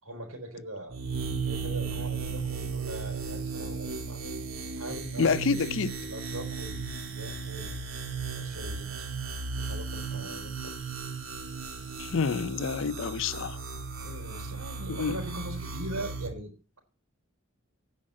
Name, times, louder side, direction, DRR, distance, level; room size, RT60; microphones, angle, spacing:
voice 1, 0.0-1.0 1.4-4.2 4.7-5.5 6.0-7.8 8.3-9.1 9.5-10.9 14.0-16.5, right 1 dB, 80° right, 4.3 m, -41 dB
sound 1, 0.9-16.3, right 4 dB, 65° right, 2.4 m, -35 dB
voice 2, 5.2-6.0 12.0-13.6 14.9-15.2, left 5 dB, 60° left, 0.5 m, -28 dB
9.8 x 5.2 x 7.5 m
head